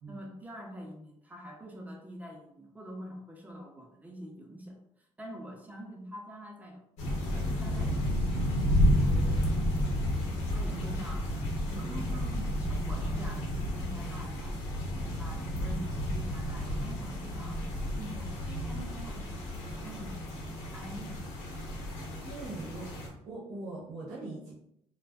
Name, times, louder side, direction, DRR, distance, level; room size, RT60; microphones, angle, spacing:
voice 1, 0.1-4.8 5.2-6.8 7.2-8.3 9.1-9.7 10.5-11.3 11.6-12.3 12.6-14.6 15.0-17.6 17.9-20.3 20.7-21.2, equal, 15° right, 1 dB, 0.6 m, -46 dB
sound 1, 7.0-23.1, equal, 90° left, 0.8 m, -31 dB
voice 2, 11.7-12.8 22.2-24.5, right 2 dB, 90° right, -7 dB, 1.0 m, -42 dB
2.5 x 2.2 x 2.3 m, 0.75 s
cardioid pair, 95°, 12 cm